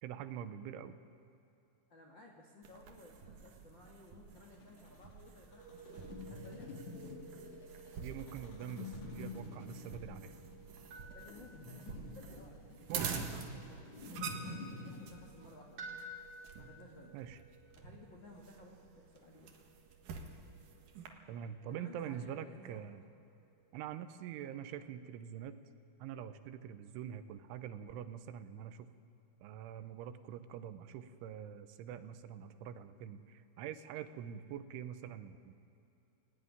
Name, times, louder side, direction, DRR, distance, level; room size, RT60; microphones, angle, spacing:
voice 1, 0.0-1.0 8.0-10.3 12.9-13.4 17.1-17.4 21.3-23.0 23.7-25.6 26.0-28.9 29.4-35.5, right 9 dB, 80° right, 10 dB, 3.1 m, -45 dB
voice 2, 1.9-6.8 11.1-16.1 16.6-17.2 17.8-19.6 21.7-22.9, left 1 dB, 80° left, 0 dB, 1.0 m, -57 dB
sound 1, 2.6-21.1, right 6 dB, 60° right, 2.2 m, -48 dB
sound 2, 4.4-15.0, left 3 dB, 45° left, 2.7 m, -49 dB
sound 3, 5.5-24.6, right 2 dB, 30° right, 3.6 m, -56 dB
18.5 x 18.0 x 9.7 m, 2.8 s
omnidirectional pair, 5.8 m